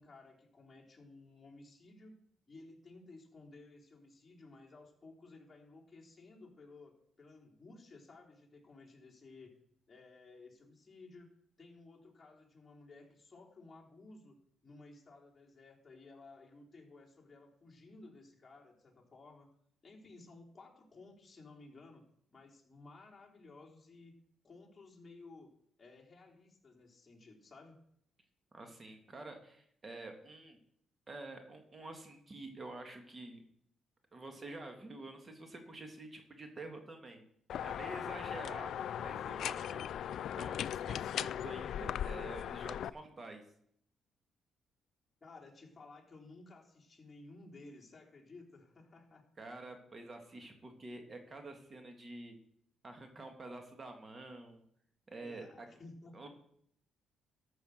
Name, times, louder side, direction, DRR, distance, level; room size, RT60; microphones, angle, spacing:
voice 1, 0.0-2.1 2.5-9.5 9.9-11.3 11.6-14.4 14.6-19.5 19.8-22.0 22.3-24.1 24.4-25.5 25.8-27.8 45.2-49.2 55.2-56.3, left 3 dB, 25° left, -3 dB, 3.6 m, -56 dB
voice 2, 28.5-30.6 31.1-33.4 34.1-37.2 37.6-39.9 40.3-43.4 49.4-52.3 52.8-54.6 55.1-55.7 56.1-56.3, right 2 dB, 30° right, 5 dB, 2.1 m, -48 dB
sound 1, 37.5-42.9, left 10 dB, 70° left, 0.3 m, -38 dB
13.5 x 6.2 x 6.6 m, 0.69 s
cardioid pair, 90°, 0 cm